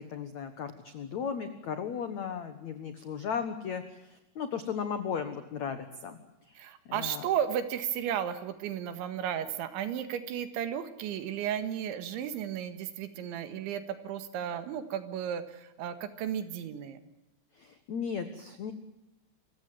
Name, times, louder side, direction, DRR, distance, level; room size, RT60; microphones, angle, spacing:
voice 1, 0.0-6.2 6.5-6.6 6.9-7.3 17.6-18.7, left 7 dB, 75° left, 9 dB, 1.6 m, -36 dB
voice 2, 6.6-17.0, right 9 dB, 75° right, 11 dB, 3.9 m, -34 dB
27.5 x 16.0 x 9.2 m, 0.92 s
omnidirectional pair, 5.5 m